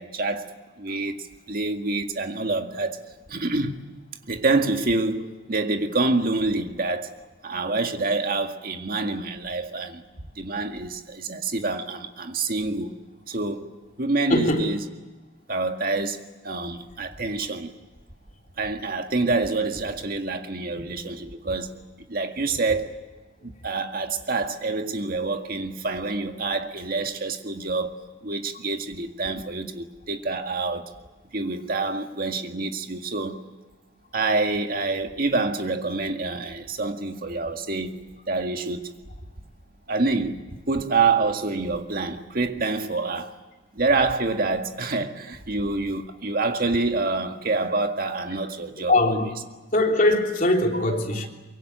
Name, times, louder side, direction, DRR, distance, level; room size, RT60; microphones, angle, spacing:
voice 1, 0.0-3.0 3.3-3.8 4.3-7.1 7.4-10.0 10.4-12.9 13.3-13.7 14.0-14.8 15.5-17.7 18.6-21.7 22.1-23.0 23.4-30.9 31.3-33.4 34.1-38.9 39.9-43.3 43.7-49.3 50.7-51.0, right 3 dB, 50° right, 1.9 m, -27 dB
voice 2, 14.3-14.7 48.9-49.4 49.7-51.3, left 2 dB, 45° left, 3.4 m, -21 dB
23.5 x 23.5 x 9.3 m
head